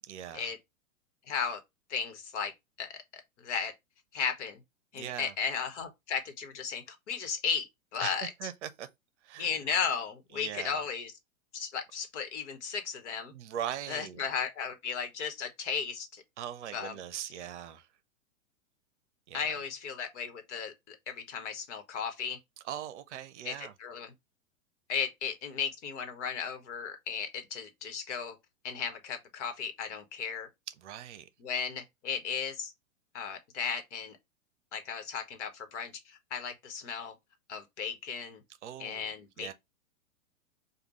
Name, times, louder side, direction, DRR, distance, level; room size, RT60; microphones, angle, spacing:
voice 1, 0.1-0.5 4.9-5.3 8.0-8.9 9.2-9.5 10.3-10.8 13.3-14.2 16.4-17.9 19.3-19.5 22.7-23.7 30.8-31.3 38.6-39.5, right 10 dB, 55° right, 0.6 m, -40 dB
voice 2, 1.3-1.6 1.9-2.5 2.8-3.0 3.4-3.7 4.1-4.6 4.9-8.3 9.4-11.1 11.5-13.3 13.9-16.2 16.7-17.0 19.3-22.4 23.4-24.1 24.9-28.4 28.6-30.5 31.4-32.7 33.1-34.2 34.7-37.1 37.5-38.4 38.8-39.5, left 6 dB, 55° left, 1.2 m, -35 dB
5.0 x 2.4 x 3.0 m
hypercardioid pair, 115°, 41 cm